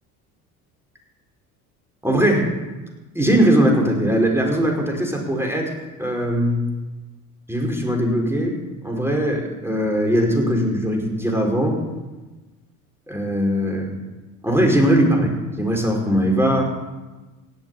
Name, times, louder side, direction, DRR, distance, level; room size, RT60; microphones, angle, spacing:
voice 1, 2.0-2.5 3.1-5.7 6.0-6.8 7.5-8.6 8.8-11.8 13.1-13.9 14.4-16.7, equal, 5° right, 1 dB, 5.1 m, -20 dB
17.5 x 8.0 x 8.6 m, 1.2 s
hypercardioid pair, 60°, 44 cm